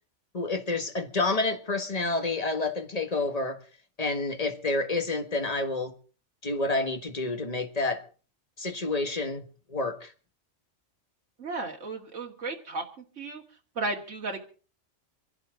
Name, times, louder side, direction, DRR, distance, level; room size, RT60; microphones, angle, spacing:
voice 1, 0.3-3.6 4.0-5.9 6.4-8.1 8.6-10.1, left 3 dB, 30° left, 1.5 m, -29 dB
voice 2, 11.4-12.8 13.2-13.4 13.8-14.4, right 3 dB, 75° right, 2.4 m, -34 dB
26.5 x 11.5 x 3.8 m
omnidirectional pair, 1.3 m